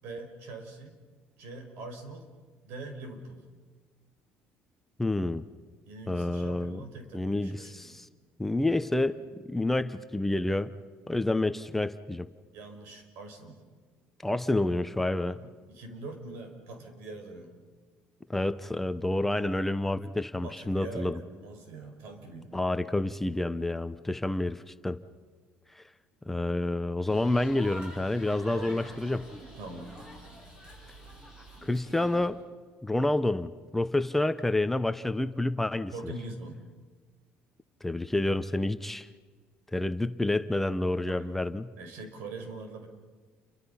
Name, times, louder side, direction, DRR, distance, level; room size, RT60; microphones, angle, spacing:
voice 1, 0.0-1.0 1.4-2.3 2.6-3.4 5.9-8.0 12.5-13.6 15.2-17.6 20.4-22.5 28.5-28.8 29.6-29.9 35.9-36.6 41.0-41.5 41.8-42.9, right 3 dB, 75° right, 5 dB, 5.3 m, -43 dB
voice 2, 5.0-5.4 6.1-6.8 7.1-8.1 8.4-10.7 11.1-12.3 14.2-15.4 18.3-21.2 22.5-25.0 25.8-25.9 26.3-29.2 31.6-32.4 32.8-35.9 37.8-39.1 39.7-41.7, left 2 dB, 5° left, 10 dB, 0.7 m, -29 dB
sound 1, 27.1-32.3, equal, 20° right, 7.0 m, -47 dB
29.5 x 24.5 x 5.7 m, 1.5 s
cardioid pair, 135°, 4 cm